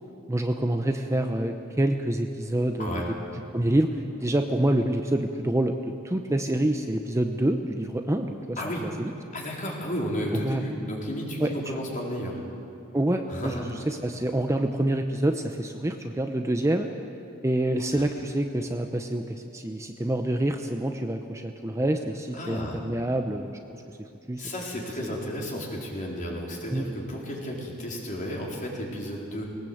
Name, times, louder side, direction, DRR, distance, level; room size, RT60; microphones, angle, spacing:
voice 1, 0.3-3.0 3.5-9.1 10.3-10.6 11.4-11.5 12.9-16.9 17.4-24.4 25.0-25.1 26.7-26.8, right 1 dB, 15° right, 5 dB, 0.7 m, -27 dB
voice 2, 8.6-8.9 9.3-12.4 13.3-13.7 17.9-18.0 22.3-22.8 24.4-29.4, equal, 40° left, -2 dB, 4.2 m, -33 dB
20.5 x 18.5 x 8.0 m, 2.7 s
head